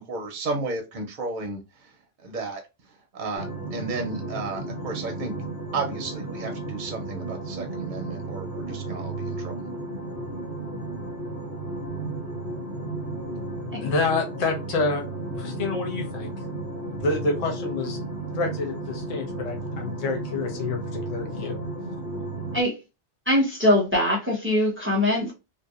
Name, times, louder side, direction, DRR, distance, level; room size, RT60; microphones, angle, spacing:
voice 1, 0.0-1.9 2.2-2.6 3.1-5.3 5.7-9.6, right 3 dB, 50° right, 3 dB, 0.6 m, -33 dB
sound 1, 3.4-22.6, right 2 dB, 75° left, 1.3 m, -33 dB
voice 2, 13.8-15.0 15.4-16.3 17.0-18.0 18.3-21.6, left 3 dB, 40° left, 2 dB, 0.6 m, -28 dB
voice 3, 23.3-25.3, left 1 dB, 10° right, -2 dB, 0.7 m, -22 dB
2.7 x 2.1 x 2.3 m, 0.26 s
omnidirectional pair, 1.2 m